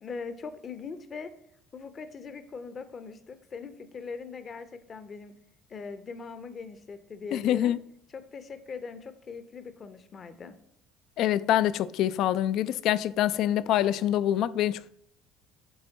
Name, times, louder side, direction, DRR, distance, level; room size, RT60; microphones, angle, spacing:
voice 1, 0.0-1.3 1.7-5.3 5.7-7.7 8.1-10.6, left 5 dB, 40° left, 0.7 m, -41 dB
voice 2, 7.3-7.8 11.2-14.9, left 12 dB, 65° left, 0.3 m, -25 dB
8.8 x 3.4 x 4.0 m
hypercardioid pair, 70°, 0 cm